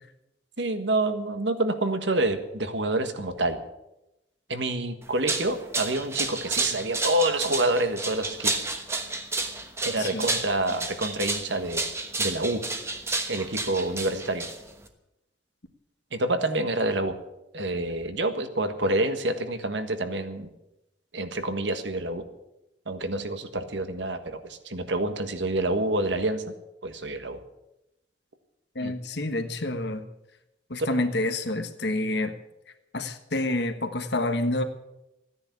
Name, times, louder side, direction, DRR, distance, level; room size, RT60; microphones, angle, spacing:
voice 1, 0.6-3.6 4.5-8.7 9.8-11.8 12.2-12.6 13.3-14.5 16.1-17.1 17.5-20.5 21.1-22.2 22.9-26.4 26.8-27.4 28.8-28.9 30.8-31.0, right 2 dB, 75° right, 8 dB, 1.5 m, -27 dB
sound 1, 5.0-14.9, right 3 dB, 15° right, 1.2 m, -31 dB
voice 2, 28.7-30.0 30.7-32.3 32.9-34.6, left 2 dB, 65° left, 7 dB, 1.4 m, -28 dB
14.5 x 10.0 x 8.3 m, 0.92 s
head